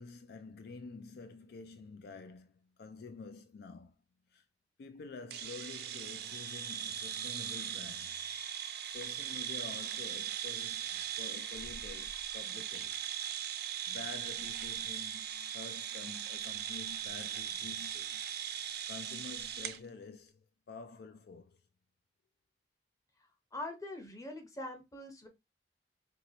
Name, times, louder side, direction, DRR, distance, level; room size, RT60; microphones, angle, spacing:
voice 1, 0.0-4.0 4.3-4.4 4.8-8.3 8.6-13.0 13.9-21.6, left 4 dB, 60° left, 0.4 m, -49 dB
sound 1, 5.3-19.8, right 9 dB, 65° right, 0.5 m, -39 dB
voice 2, 23.5-25.3, left 1 dB, 20° left, 0.9 m, -43 dB
4.5 x 2.9 x 2.8 m
head